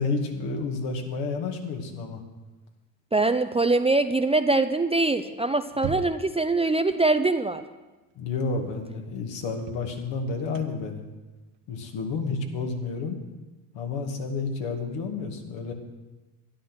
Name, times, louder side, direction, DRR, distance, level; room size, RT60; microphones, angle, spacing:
voice 1, 0.0-2.2 8.2-11.1 11.7-13.2 13.7-15.7, left 4 dB, 65° left, 3 dB, 2.3 m, -30 dB
voice 2, 3.1-7.6, right 2 dB, 15° right, 8 dB, 0.6 m, -23 dB
sound 1, 5.7-6.4 8.2-8.3 8.7-8.8 9.6-13.2, right 7 dB, 65° right, 1.2 m, -40 dB
12.5 x 10.5 x 6.3 m, 1.1 s
hypercardioid pair, 70°, 48 cm